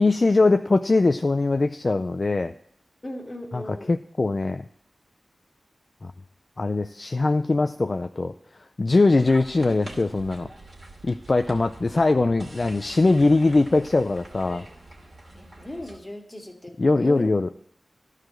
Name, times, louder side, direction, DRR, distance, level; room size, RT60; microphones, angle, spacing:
voice 1, 0.0-2.5 3.5-3.6 3.9-4.6 6.0-6.1 6.6-8.3 8.8-10.5 11.0-14.6 16.8-17.5, left 3 dB, 45° left, 7 dB, 0.4 m, -21 dB
voice 2, 3.0-4.0 15.3-17.3, left 1 dB, 20° left, 2 dB, 1.9 m, -38 dB
sound 1, 9.1-16.0, right 1 dB, 45° right, 2.5 m, -44 dB
12.5 x 4.9 x 7.6 m, 0.65 s
wide cardioid pair, 80°, 0 cm